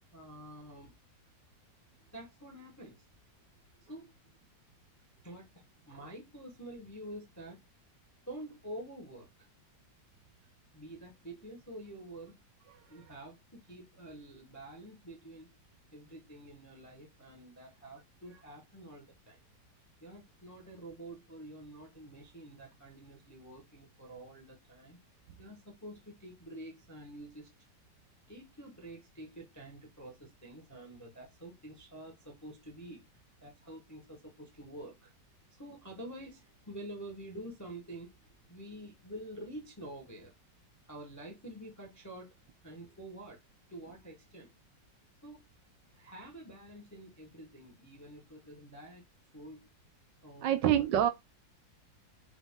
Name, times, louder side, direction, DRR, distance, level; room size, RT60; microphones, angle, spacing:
voice 1, 0.1-0.9 2.1-3.0 3.8-4.1 5.2-7.7 8.3-9.5 10.7-12.4 12.9-15.5 15.9-19.4 20.0-25.0 25.4-27.5 28.3-35.1 35.5-40.3 40.8-42.3 42.6-43.4 43.7-44.5 45.2-45.4 45.9-49.0 49.3-49.7 50.2-50.9, right 1 dB, 15° left, 0.6 m, -48 dB
voice 2, 50.4-51.1, right 11 dB, 75° right, 1.2 m, -26 dB
4.9 x 2.3 x 3.6 m
omnidirectional pair, 2.0 m